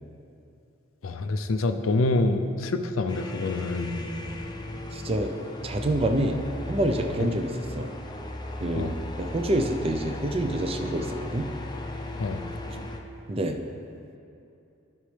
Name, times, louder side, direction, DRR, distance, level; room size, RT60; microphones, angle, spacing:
voice 1, 1.0-3.9 8.8-8.9 12.2-12.4, left 2 dB, 90° left, 8 dB, 0.5 m, -26 dB
sound 1, 3.1-13.0, left 1 dB, 20° left, 0.6 m, -36 dB
voice 2, 4.9-5.3 5.6-6.4 6.7-7.9 8.6-8.9 9.2-11.5 13.3-13.6, right 1 dB, 30° right, 5 dB, 0.5 m, -27 dB
14.5 x 5.2 x 3.3 m, 2.6 s
head